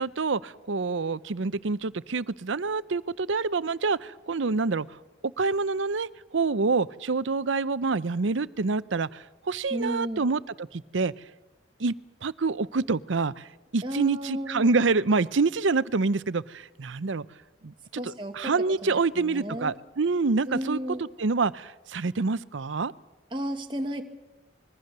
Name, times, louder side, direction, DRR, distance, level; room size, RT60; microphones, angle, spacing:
voice 1, 0.0-5.0 5.2-11.1 11.8-11.9 12.2-17.3 17.6-20.8 21.2-22.9, right 4 dB, 80° right, 17 dB, 0.7 m, -27 dB
voice 2, 9.7-10.2 13.8-14.7 18.0-18.5 18.8-19.8 20.5-21.1 23.3-24.0, equal, 25° right, 3 dB, 1.5 m, -33 dB
25.5 x 21.5 x 6.7 m, 1.0 s
head